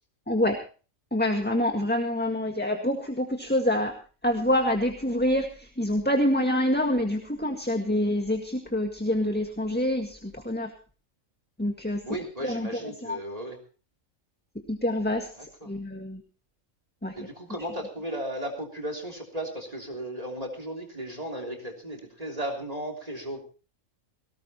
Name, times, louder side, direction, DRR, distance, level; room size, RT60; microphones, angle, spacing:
voice 1, 1.1-3.9 4.2-10.7 11.6-12.0 12.4-12.7 13.0-13.2 14.7-16.2 17.0-17.2, left 1 dB, 10° left, 5 dB, 1.7 m, -26 dB
voice 2, 12.0-13.6 15.3-15.7 17.1-23.4, right 1 dB, 30° right, 3 dB, 3.4 m, -35 dB
19.0 x 18.0 x 3.0 m, 0.37 s
omnidirectional pair, 1.3 m